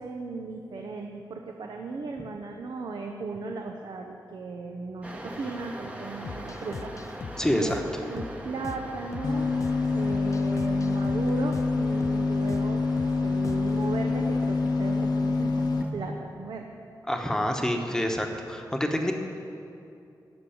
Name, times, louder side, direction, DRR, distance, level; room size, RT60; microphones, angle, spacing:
voice 1, 0.0-6.9 7.5-7.8 8.1-9.5 9.9-12.8 13.2-16.7, right 4 dB, 75° right, 2 dB, 0.8 m, -36 dB
sound 1, 5.0-15.9, right 1 dB, 15° right, 1.0 m, -42 dB
sound 2, 6.2-13.9, left 5 dB, 45° left, 0.4 m, -41 dB
voice 2, 7.4-7.8 17.1-19.1, left 1 dB, 5° left, 3 dB, 1.1 m, -27 dB
sound 3, 9.2-15.8, left 3 dB, 65° left, 0.8 m, -26 dB
13.5 x 6.2 x 8.6 m, 2.6 s
wide cardioid pair, 135°, 8 cm